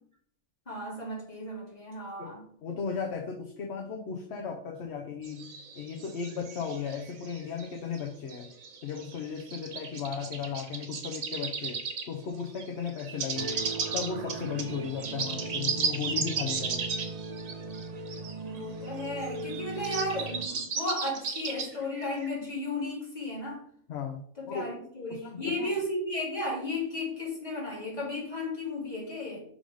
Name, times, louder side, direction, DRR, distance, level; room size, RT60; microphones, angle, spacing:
voice 1, 0.7-2.4 18.5-23.6 24.4-29.4, left 2 dB, 30° left, 2.7 m, -34 dB
voice 2, 2.6-8.5 8.8-13.6 13.9-16.8 23.9-24.2 24.5-24.7 25.1-25.7, left 6 dB, 60° left, 1.0 m, -36 dB
sound 1, 5.2-7.7 7.9-12.1 12.4-18.3 18.6-18.7 18.9-22.3, right 5 dB, 80° right, 1.4 m, -35 dB
sound 2, 13.3-20.5, right 3 dB, 60° right, 0.4 m, -39 dB
5.2 x 3.8 x 4.9 m
omnidirectional pair, 1.4 m